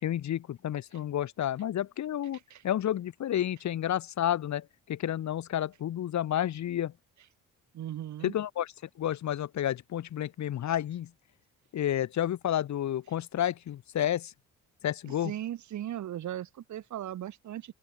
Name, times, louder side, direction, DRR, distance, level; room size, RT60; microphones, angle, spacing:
voice 1, 0.0-2.4 2.6-6.9 8.2-8.7 9.0-11.1 11.7-14.3 14.8-15.3, left 11 dB, 65° left, 2.5 m, -30 dB
voice 2, 7.7-8.3 15.1-17.7, right 11 dB, 70° right, 2.9 m, -38 dB
open air
cardioid pair, 90°, 30 cm